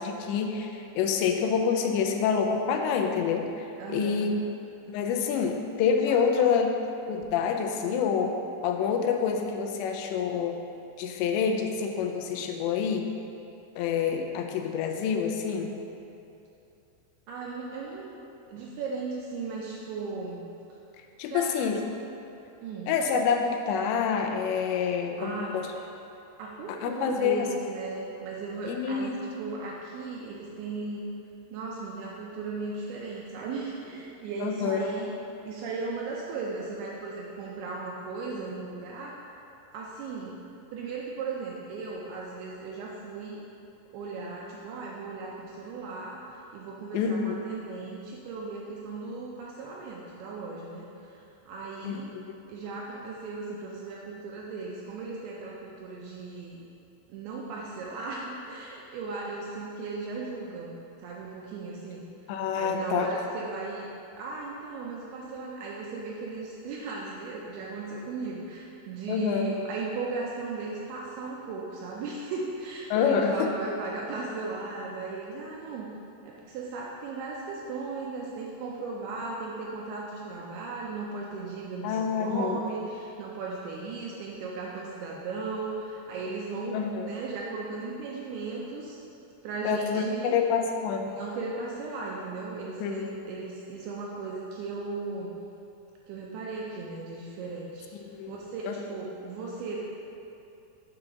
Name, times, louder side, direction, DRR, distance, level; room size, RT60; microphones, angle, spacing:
voice 1, 0.0-4.4 4.9-6.7 7.1-8.4 8.6-10.6 11.0-13.1 13.8-15.7 21.2-21.8 22.9-25.7 26.7-27.5 28.7-29.2 34.4-34.9 46.9-47.4 51.8-52.4 62.3-63.1 69.1-69.5 72.9-73.5 81.8-82.6 86.7-87.1 89.6-91.1 92.8-93.1 97.9-98.3 98.7-98.8, left 6 dB, 90° left, 4 dB, 2.8 m, -27 dB
voice 2, 3.8-4.3 6.1-6.5 17.3-18.2 18.5-20.4 21.3-21.9 22.6-23.0 25.2-25.6 26.4-31.1 31.5-35.1 35.4-39.4 39.7-40.4 40.7-43.4 43.9-52.2 52.5-56.6 57.1-63.9 64.2-75.9 76.2-89.0 89.4-90.4 91.1-95.3 96.1-99.8, right 3 dB, 80° right, -3 dB, 2.3 m, -37 dB
7.0 x 3.9 x 5.5 m, 2.7 s
omnidirectional pair, 5.0 m